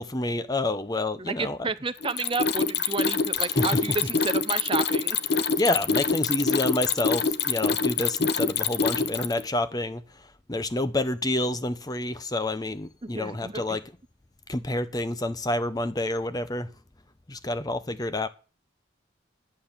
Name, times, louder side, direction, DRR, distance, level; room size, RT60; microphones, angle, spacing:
voice 1, 0.0-1.6 3.4-4.0 5.3-13.8 14.5-16.7 17.3-18.3, left 2 dB, 20° left, 0.7 m, -28 dB
voice 2, 1.2-5.2 13.0-13.8, right 4 dB, 25° right, 0.6 m, -31 dB
Mechanisms, 2.0-9.5, left 5 dB, 55° left, 0.9 m, -25 dB
11.0 x 9.7 x 7.2 m
head